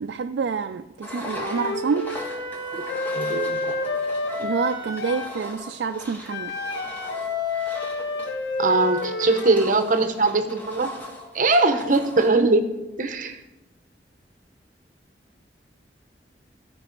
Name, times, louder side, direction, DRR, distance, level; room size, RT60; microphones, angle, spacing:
voice 1, 0.0-2.2 4.4-6.6 12.4-12.5, right 5 dB, 80° right, 0.4 m, -27 dB
Engine, 1.0-12.4, left 1 dB, 10° left, 1.8 m, -40 dB
Wind instrument woodwind instrument, 1.3-5.3 6.3-9.7, left 3 dB, 80° left, 1.3 m, -29 dB
voice 2, 3.1-3.6 8.6-10.9 11.3-12.6 13.0-13.4, right 3 dB, 50° right, 0.9 m, -21 dB
15.5 x 5.2 x 5.2 m
head